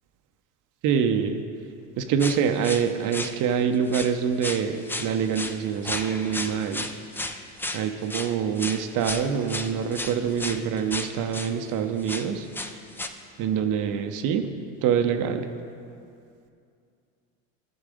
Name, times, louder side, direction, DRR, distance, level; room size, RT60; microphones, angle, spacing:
voice 1, 0.8-1.4 2.0-6.9 7.7-12.5 13.4-14.5 14.8-15.5, right 7 dB, 55° right, 7 dB, 0.8 m, -25 dB
sound 1, 2.2-3.6 3.9-4.1 4.4-11.5 12.0-13.1, left 2 dB, 5° left, 0.4 m, -33 dB
14.0 x 4.8 x 4.9 m, 2.4 s
supercardioid pair, 100°, 38 cm